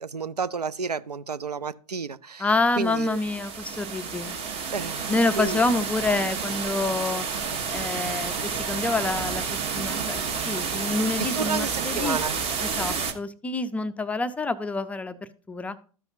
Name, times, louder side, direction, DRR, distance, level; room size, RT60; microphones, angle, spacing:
voice 1, 0.0-2.5 2.8-3.2 4.7-5.6 11.2-12.3, right 5 dB, 85° right, 0.4 m, -31 dB
voice 2, 2.4-4.4 5.1-7.3 7.7-12.2 12.6-15.8, left 3 dB, 5° left, 0.4 m, -27 dB
sound 1, 2.8-13.1, right 5 dB, 30° right, 1.0 m, -30 dB
13.5 x 5.5 x 2.6 m
figure-of-eight pair, 100°, 20 cm